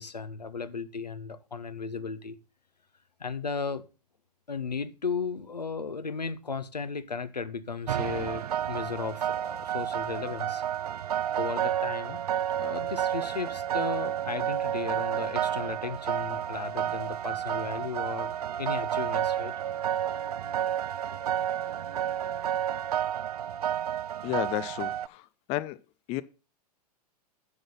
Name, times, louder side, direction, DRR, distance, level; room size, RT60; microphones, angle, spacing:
voice 1, 0.0-2.4 3.2-3.8 4.5-10.6 10.9-11.0 11.4-12.2 12.6-19.5, left 5 dB, 85° left, 1.0 m, -35 dB
sound 1, 7.9-25.1, right 10 dB, 70° right, 0.6 m, -31 dB
voice 2, 24.2-24.9 25.5-25.8 26.1-26.2, left 17 dB, 30° left, 0.5 m, -30 dB
10.0 x 6.4 x 5.4 m
figure-of-eight pair, 100°, 20 cm